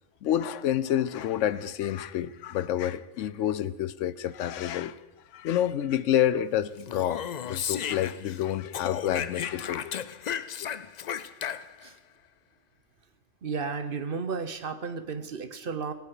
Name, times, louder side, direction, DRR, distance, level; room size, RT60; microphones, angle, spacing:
voice 1, 0.2-5.0 5.3-10.0, left 11 dB, 80° left, 16 dB, 0.9 m, -28 dB
Speech, 6.8-8.4 8.7-11.9, left 8 dB, 60° left, 0.4 m, -34 dB
voice 2, 13.4-15.9, right 5 dB, 50° right, 9 dB, 1.0 m, -33 dB
19.0 x 9.6 x 4.9 m, 1.1 s
omnidirectional pair, 1.3 m